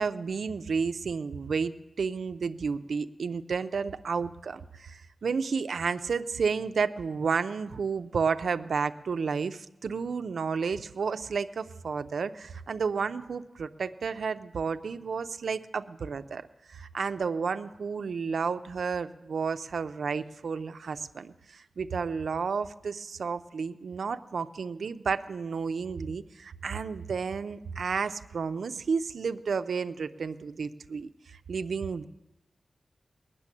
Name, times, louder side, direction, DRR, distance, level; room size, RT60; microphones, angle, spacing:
voice 1, 0.0-1.7 2.0-16.4 16.7-32.1, right 5 dB, 85° right, 9 dB, 0.6 m, -31 dB
20.0 x 6.9 x 9.8 m, 0.95 s
wide cardioid pair, 115°, 0 cm